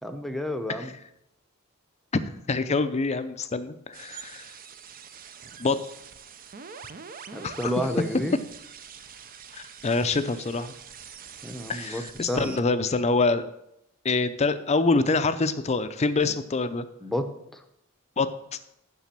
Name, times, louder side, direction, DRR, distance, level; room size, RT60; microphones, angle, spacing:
voice 1, 0.0-0.9 7.3-8.4 11.4-12.6 16.3-16.4 17.0-17.6, equal, ahead, 7 dB, 0.8 m, -31 dB
voice 2, 2.5-4.4 5.6-5.8 7.4-7.9 9.5-10.7 11.7-13.5 14.0-16.9 18.2-18.3, left 3 dB, 30° left, 11 dB, 0.5 m, -25 dB
sound 1, 3.9-12.6, right 7 dB, 40° right, 0.6 m, -45 dB
7.3 x 6.1 x 7.4 m, 0.81 s
head